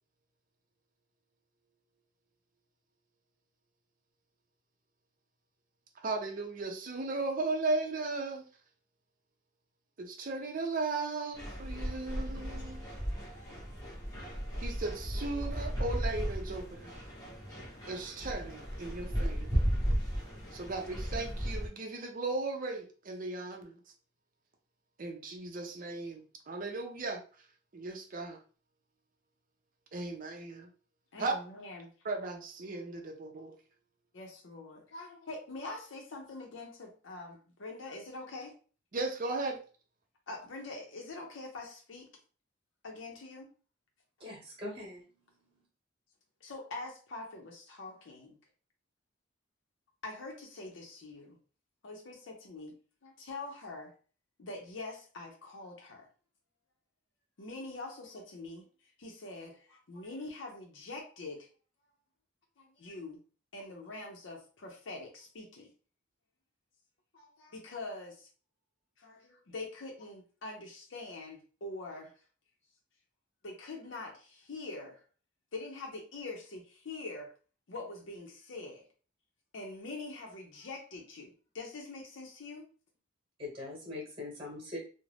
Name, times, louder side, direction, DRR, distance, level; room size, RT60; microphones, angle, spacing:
voice 1, 6.0-8.4 10.0-12.9 14.6-16.9 17.9-19.7 20.5-23.8 25.0-27.2 27.7-28.4 29.9-30.7 31.2-31.3 32.0-33.5 38.9-39.6, right 3 dB, 45° right, 3 dB, 0.5 m, -36 dB
sound 1, 11.3-21.7, equal, 20° left, 0.8 m, -35 dB
voice 2, 31.1-31.9 34.1-38.5 40.3-42.1 42.8-43.5 46.4-48.4 50.0-51.4 51.8-52.7 53.0-53.9 54.4-56.1 57.4-58.7 59.0-61.5 62.6-63.2 63.5-65.7 67.1-68.3 69.0-72.1 73.4-75.0 75.5-77.3 77.7-78.9 79.5-82.7, left 2 dB, 70° left, 0 dB, 0.6 m, -44 dB
voice 3, 44.2-45.0 83.4-84.8, left 2 dB, 30° right, -1 dB, 1.1 m, -42 dB
2.5 x 2.0 x 3.2 m, 0.38 s
head